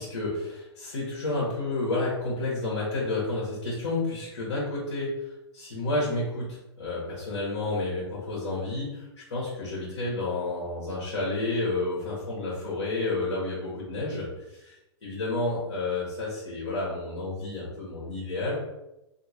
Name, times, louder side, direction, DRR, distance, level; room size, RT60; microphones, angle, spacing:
voice 1, 0.0-14.8 15.0-18.5, left 2 dB, 90° left, -7 dB, 1.3 m, -30 dB
3.0 x 2.9 x 2.9 m, 0.92 s
hypercardioid pair, 130°, 14 cm